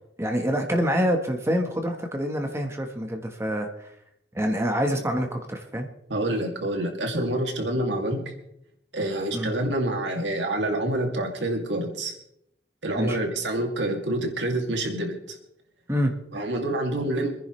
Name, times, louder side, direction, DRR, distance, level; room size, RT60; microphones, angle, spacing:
voice 1, 0.2-3.9 4.3-5.9 9.3-9.5 13.0-13.2 15.9-16.1, equal, 15° right, 4 dB, 1.3 m, -26 dB
voice 2, 6.1-8.2 8.9-12.1 12.8-15.4 16.3-17.3, right 1 dB, 85° right, 3 dB, 2.6 m, -27 dB
26.5 x 10.5 x 3.2 m, 0.77 s
head